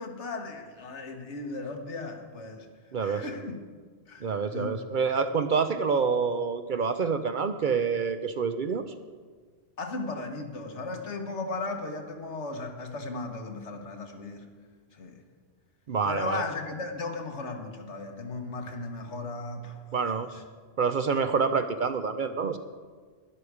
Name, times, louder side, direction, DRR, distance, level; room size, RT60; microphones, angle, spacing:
voice 1, 0.0-2.7 3.0-3.6 4.1-4.7 9.8-14.5 14.9-15.2 16.0-19.8 20.3-20.4, left 3 dB, 80° left, 4 dB, 1.6 m, -36 dB
voice 2, 2.9-3.2 4.2-8.8 15.9-16.4 19.9-20.3 20.8-22.6, right 5 dB, 55° right, 9 dB, 0.7 m, -27 dB
12.0 x 11.0 x 4.9 m, 1.5 s
omnidirectional pair, 1.2 m